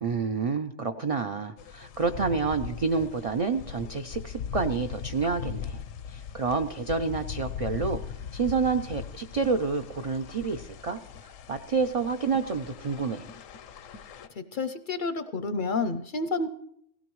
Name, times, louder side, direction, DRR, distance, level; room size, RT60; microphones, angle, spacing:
voice 1, 0.0-5.8 6.1-8.0 8.3-11.0 11.5-13.3, right 4 dB, 55° right, 6 dB, 0.4 m, -28 dB
sound 1, 1.6-14.3, left 7 dB, 90° left, 1.1 m, -40 dB
voice 2, 14.5-16.5, left 3 dB, 55° left, 11 dB, 0.6 m, -29 dB
17.5 x 16.0 x 3.1 m, 0.74 s
omnidirectional pair, 1.3 m